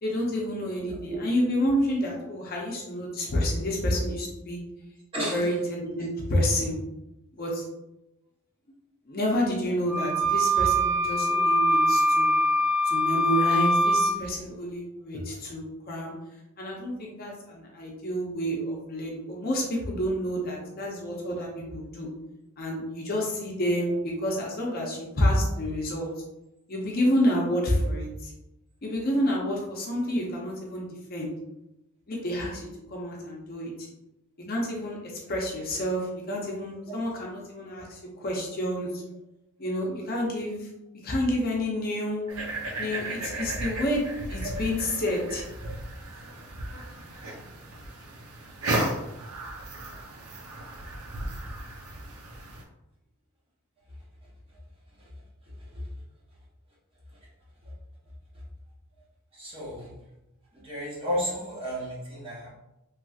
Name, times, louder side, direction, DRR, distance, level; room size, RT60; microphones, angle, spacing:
voice 1, 0.0-4.6 5.2-6.8 7.3-7.6 9.1-12.3 12.8-16.1 16.6-22.1 22.6-26.1 26.7-28.3 28.8-31.3 32.1-33.9 34.5-39.0 39.6-40.7 41.0-42.2 42.8-44.0 44.3-45.4, equal, 40° left, -2 dB, 0.6 m, -29 dB
voice 2, 0.8-1.2 4.1-4.2 5.1-5.4 44.4-44.5 59.3-59.9 60.5-62.5, equal, 25° right, -6 dB, 0.9 m, -33 dB
Wind instrument woodwind instrument, 9.9-14.2, equal, 5° right, 0.4 m, -23 dB
sound 1, 42.3-52.6, right 1 dB, 75° right, 0.6 m, -35 dB
3.1 x 2.8 x 2.3 m, 0.90 s
head